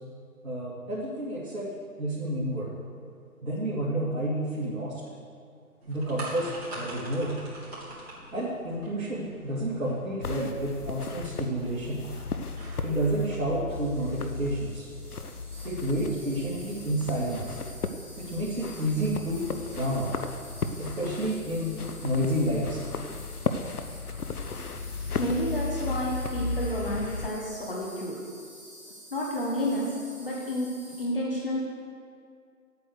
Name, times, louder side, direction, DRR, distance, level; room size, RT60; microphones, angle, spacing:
voice 1, 0.4-1.7 2.0-2.7 3.4-5.0 5.9-7.3 8.3-12.0 12.8-14.8 15.6-17.6 18.2-19.5 19.7-20.1 20.8-21.7 22.0-22.8, right 1 dB, 60° right, -8 dB, 2.7 m, -30 dB
sound 1, 5.8-13.1, right 1 dB, 45° right, 3.5 m, -44 dB
sound 2, 10.2-27.3, left 4 dB, 80° left, 0.9 m, -35 dB
Insect, 13.7-31.0, equal, 5° right, 2.3 m, -49 dB
voice 2, 25.2-28.2 29.1-29.9 30.2-30.7 31.0-31.6, equal, 35° left, -4 dB, 1.3 m, -30 dB
9.6 x 8.8 x 6.4 m, 2.2 s
figure-of-eight pair, 165°, 45 cm